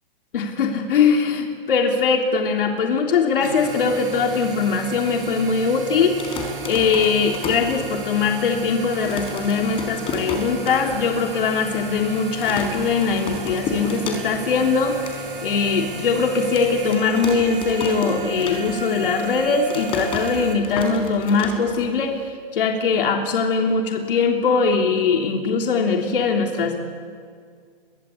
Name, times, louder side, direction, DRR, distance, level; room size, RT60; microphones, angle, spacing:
voice 1, 0.3-6.2 6.7-15.1 15.4-26.8, left 5 dB, 65° left, 2 dB, 3.2 m, -21 dB
sound 1, 3.4-20.5, right 6 dB, 65° right, 6.1 m, -37 dB
sound 2, 3.5-17.0, equal, ahead, 6.1 m, -38 dB
sound 3, 6.2-8.3 8.6-8.7 8.9-11.0 11.3-11.4 11.6-12.0 12.4-14.6 14.8-15.2 15.7-15.8 16.6-19.0 19.3-22.2, left 3 dB, 20° left, 4.6 m, -32 dB
29.0 x 23.0 x 8.5 m, 2.1 s
hypercardioid pair, 160°, 29 cm